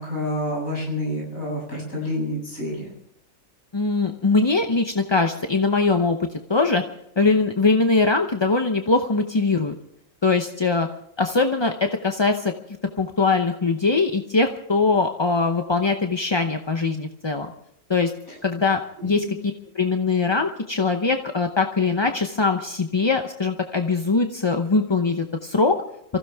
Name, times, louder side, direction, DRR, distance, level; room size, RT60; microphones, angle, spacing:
voice 1, 0.0-2.9 18.3-18.4 19.0-19.3, left 1 dB, 70° left, -3 dB, 8.2 m, -28 dB
voice 2, 3.7-6.8 7.2-9.7 10.2-10.9 11.2-12.5 13.0-17.5 17.9-18.1 18.4-19.2 19.8-25.8, left 3 dB, 25° left, 5 dB, 0.6 m, -21 dB
25.0 x 15.5 x 3.5 m, 0.78 s
omnidirectional pair, 1.5 m